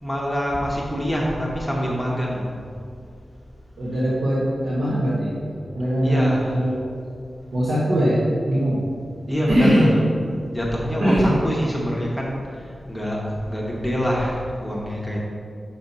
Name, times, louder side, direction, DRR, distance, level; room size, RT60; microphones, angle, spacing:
voice 1, 0.0-2.5 6.0-6.5 9.3-10.0 10.5-15.2, equal, 5° left, -4 dB, 1.0 m, -25 dB
voice 2, 3.8-5.4 5.7-6.8 7.5-8.9 9.5-9.9 11.0-11.4, equal, 90° right, -8 dB, 1.2 m, -21 dB
6.0 x 4.3 x 5.4 m, 2.2 s
wide cardioid pair, 115°, 0 cm